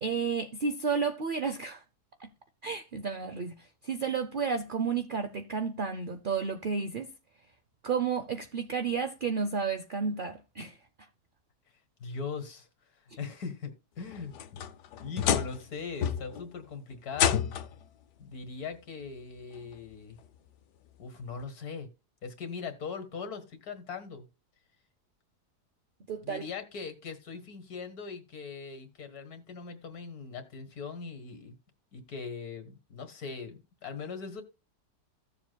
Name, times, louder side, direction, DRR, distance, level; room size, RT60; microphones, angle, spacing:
voice 1, 0.0-1.8 2.2-2.3 2.6-7.1 7.8-10.8 26.1-26.5, right 5 dB, 50° right, 0.6 m, -32 dB
voice 2, 12.0-12.7 13.2-14.3 15.0-17.4 18.2-20.2 21.0-21.9 22.2-24.3 26.2-31.5 31.9-34.4, left 5 dB, 65° left, 2.0 m, -40 dB
sound 1, 14.1-15.7 16.0-16.5 17.1-17.8 19.0-19.1 19.7-19.8 21.4-21.5, left 9 dB, 85° left, 1.3 m, -29 dB
15.5 x 7.2 x 2.3 m
omnidirectional pair, 1.7 m